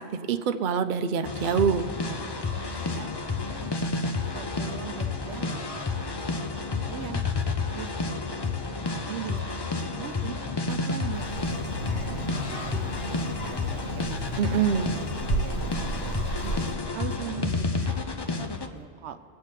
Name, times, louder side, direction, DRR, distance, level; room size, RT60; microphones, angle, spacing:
voice 1, 0.0-1.9 14.4-14.9, right 7 dB, 55° right, 8 dB, 0.6 m, -25 dB
sound 1, 1.2-18.7, left 3 dB, 30° left, 0.6 m, -30 dB
voice 2, 2.7-3.7 4.2-7.2 7.7-8.4 8.7-10.4 10.6-14.0 14.5-16.6 16.9-19.2, right 9 dB, 85° right, 10 dB, 0.9 m, -41 dB
Child speech kid speaking, 11.1-16.7, right 2 dB, 65° left, 1.6 m, -33 dB
21.5 x 8.2 x 3.2 m, 2.6 s
omnidirectional pair, 1.1 m